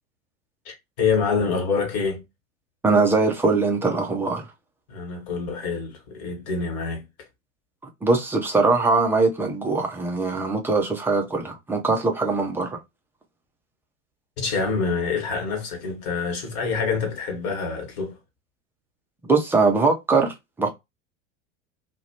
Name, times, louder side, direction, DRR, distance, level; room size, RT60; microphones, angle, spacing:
voice 1, 0.6-2.2 4.9-7.0 14.4-18.2, left 5 dB, 50° left, 1.3 m, -26 dB
voice 2, 2.8-4.4 8.0-12.8 19.3-20.7, right 3 dB, 5° right, 0.3 m, -21 dB
2.4 x 2.1 x 2.7 m
figure-of-eight pair, 85°, 39 cm